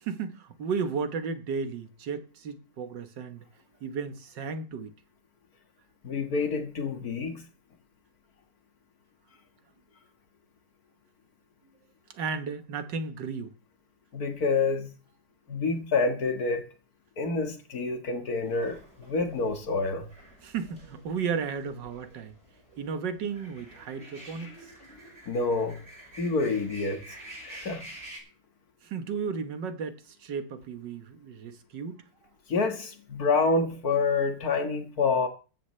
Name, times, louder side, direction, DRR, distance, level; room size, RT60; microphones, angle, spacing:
voice 1, 0.0-3.4 3.8-4.9 12.1-13.5 20.4-22.4 22.8-24.7 28.8-32.0, right 5 dB, 80° right, 1.9 m, -34 dB
voice 2, 6.0-7.4 14.1-14.9 15.5-16.7 17.2-20.1 24.4-24.5 25.3-25.8 26.2-27.2 27.4-27.9 32.5-35.3, left 4 dB, 60° left, 2.1 m, -27 dB
sound 1, 18.4-28.2, right 1 dB, 35° right, 5.7 m, -49 dB
15.0 x 13.5 x 3.2 m
omnidirectional pair, 1.9 m